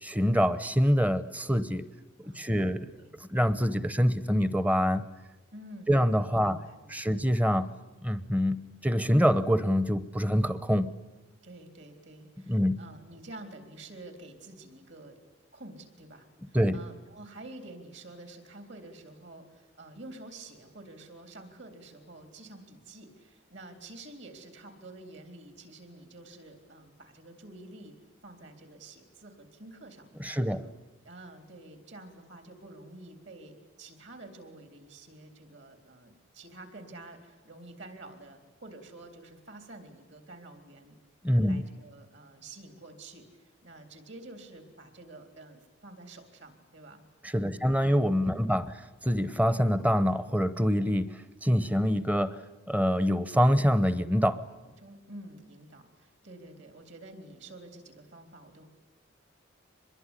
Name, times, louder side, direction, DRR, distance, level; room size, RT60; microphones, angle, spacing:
voice 1, 0.0-1.9 2.2-2.9 3.3-5.0 5.9-6.6 6.9-7.7 8.0-10.9 12.5-12.8 16.5-16.8 30.2-30.7 41.2-41.6 47.2-48.6 49.0-52.4 52.7-54.4, equal, 5° right, 14 dB, 0.8 m, -25 dB
voice 2, 2.2-3.1 5.5-6.0 6.4-7.2 11.4-15.2 15.5-28.0 28.2-30.6 31.0-41.0 41.4-47.0 47.4-47.8 48.2-48.6 54.6-58.7, right 2 dB, 60° right, 7 dB, 3.7 m, -49 dB
24.0 x 21.5 x 10.0 m, 1.1 s
head